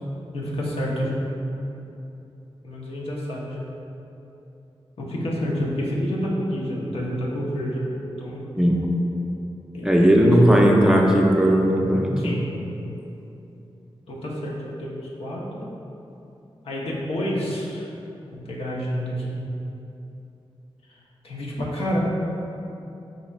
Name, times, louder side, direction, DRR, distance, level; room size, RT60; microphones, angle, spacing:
voice 1, 0.3-1.2 2.6-3.6 5.0-7.9 8.2-8.5 9.7-10.6 12.2-12.5 14.1-15.7 16.6-17.9 18.3-19.3 21.2-22.0, equal, 85° left, -4 dB, 0.8 m, -29 dB
voice 2, 9.8-12.4, equal, 5° right, -1 dB, 0.5 m, -17 dB
5.1 x 2.3 x 4.1 m, 2.9 s
wide cardioid pair, 95°, 10 cm